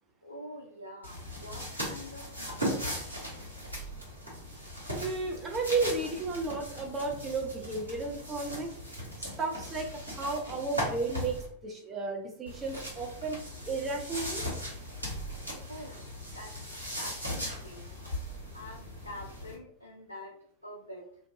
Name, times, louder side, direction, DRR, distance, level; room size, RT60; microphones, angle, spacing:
voice 1, 0.2-3.7 15.7-18.0 18.5-21.1, left 1 dB, 85° left, -2 dB, 0.4 m, -47 dB
sound 1, 1.0-11.5 12.4-19.5, equal, 85° right, 1.0 m, -38 dB
voice 2, 4.9-8.7 9.2-9.9 10.2-14.4, right 3 dB, 20° right, 1 dB, 0.4 m, -33 dB
2.5 x 2.2 x 2.5 m, 0.63 s
figure-of-eight pair, 90°, 0 cm